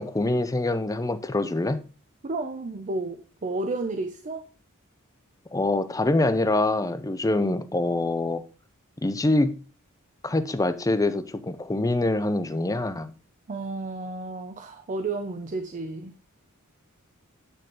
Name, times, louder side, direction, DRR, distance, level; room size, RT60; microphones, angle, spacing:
voice 1, 0.0-1.8 5.5-8.4 9.0-9.6 10.2-13.1, left 2 dB, 15° left, 0.5 m, -25 dB
voice 2, 2.2-4.4 13.5-16.1, right 2 dB, 35° right, 0.5 m, -32 dB
9.1 x 3.9 x 3.9 m
head